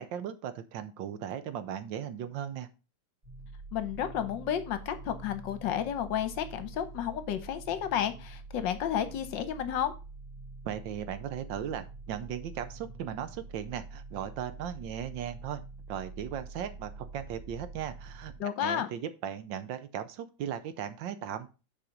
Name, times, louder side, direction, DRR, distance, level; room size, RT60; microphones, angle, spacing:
voice 1, 0.0-2.7 10.6-15.6 15.9-18.3 18.6-21.5, right 9 dB, 70° right, 11 dB, 1.3 m, -37 dB
sound 1, 3.2-18.4, right 3 dB, 30° right, 4.7 m, -46 dB
voice 2, 3.7-9.9 18.4-18.9, left 9 dB, 70° left, 11 dB, 1.4 m, -32 dB
7.3 x 4.9 x 5.1 m, 0.31 s
omnidirectional pair, 2.2 m